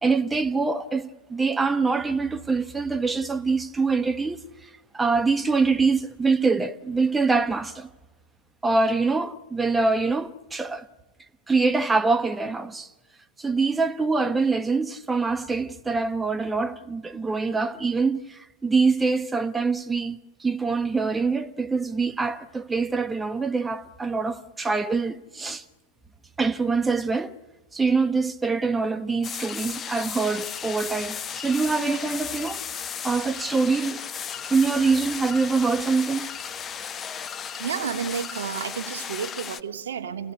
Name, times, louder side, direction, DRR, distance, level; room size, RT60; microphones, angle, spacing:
voice 1, 0.0-4.4 4.9-7.9 8.6-10.9 11.5-12.9 13.4-25.6 26.4-27.3 27.7-34.0 34.5-36.3, right 4 dB, 10° right, 0.9 m, -24 dB
sound 1, 29.2-39.6, left 7 dB, 25° left, 0.7 m, -35 dB
voice 2, 37.6-40.3, right 7 dB, 65° right, 1.4 m, -31 dB
29.0 x 16.5 x 7.0 m
figure-of-eight pair, 90°, 0 cm